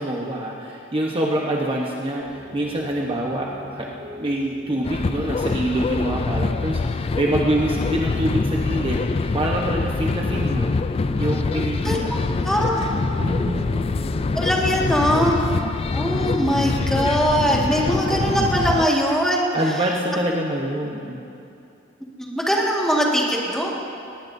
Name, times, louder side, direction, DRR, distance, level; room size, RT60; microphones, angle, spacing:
voice 1, 0.0-3.9 4.2-9.0 9.3-10.7 11.2-12.1 13.2-13.9 19.5-21.2, right 1 dB, 30° right, -2 dB, 1.0 m, -25 dB
Piano, 2.2-15.1, equal, 55° right, 1.9 m, -40 dB
sound 1, 4.8-18.9, left 3 dB, 30° left, 0.3 m, -24 dB
voice 2, 12.4-12.9 14.3-15.4 15.9-19.5 22.2-23.7, equal, 5° left, -3 dB, 1.8 m, -21 dB
19.0 x 18.5 x 2.7 m, 2.6 s
head